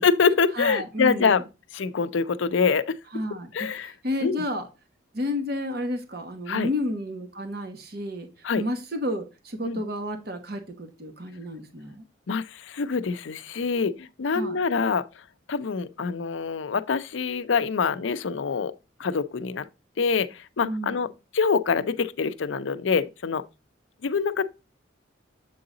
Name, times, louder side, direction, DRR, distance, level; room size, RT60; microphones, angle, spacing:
voice 1, 0.0-1.4 1.7-2.9 3.5-3.9 4.2-4.4 6.5-6.7 8.4-8.6 9.6-9.8 12.3-15.1 15.5-18.7 19.0-19.7 20.0-23.4 24.0-24.4, left 5 dB, 75° left, 0.5 m, -25 dB
voice 2, 0.6-1.4 3.1-4.7 5.1-8.3 8.5-12.0 14.3-14.6 20.6-21.0, left 1 dB, 50° right, 1.2 m, -31 dB
7.7 x 3.9 x 3.8 m
head